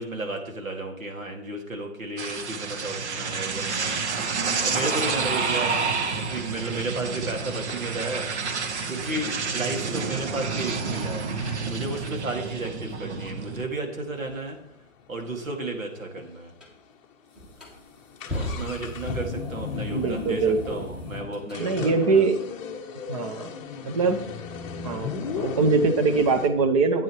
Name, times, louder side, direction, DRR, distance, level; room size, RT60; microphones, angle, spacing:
voice 1, 0.0-4.0 4.6-8.2 8.9-11.3 11.6-14.6 15.1-16.5 18.3-22.3, right 2 dB, 80° right, 2 dB, 2.5 m, -33 dB
sound 1, 2.2-13.7, right 4 dB, 55° right, 1.2 m, -29 dB
sound 2, 7.1-7.2 7.7-10.3 10.9-11.0 11.4-11.6 11.9-15.6 15.9-16.0 16.2-16.3 16.9-17.0 17.3-26.5, left 5 dB, 25° left, 0.9 m, -37 dB
sound 3, 16.6-16.7 17.3-21.6, left 1 dB, ahead, 1.3 m, -37 dB
voice 2, 19.9-20.9 21.6-22.4 23.1-23.5 23.8-24.2 24.8-27.0, right 4 dB, 25° right, 8 dB, 0.7 m, -23 dB
12.0 x 9.0 x 3.1 m, 0.71 s
hypercardioid pair, 145°, 40 cm